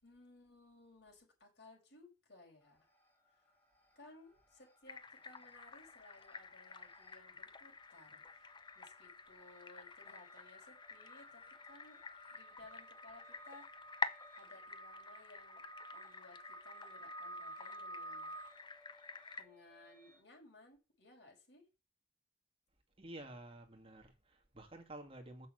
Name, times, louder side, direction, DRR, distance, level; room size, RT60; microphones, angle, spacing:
voice 1, 0.0-2.9 3.3-3.4 4.0-12.0 12.3-13.7 14.4-15.6 15.9-18.3 19.4-21.7, left 2 dB, 65° left, 5.6 m, -60 dB
sound 1, 2.6-3.3 3.6-20.2, right 1 dB, 10° left, 2.3 m, -55 dB
sound 2, 4.9-19.4, left 4 dB, 25° left, 0.6 m, -49 dB
voice 2, 23.0-25.5, right 1 dB, 30° right, 2.0 m, -51 dB
6.9 x 6.2 x 7.7 m
head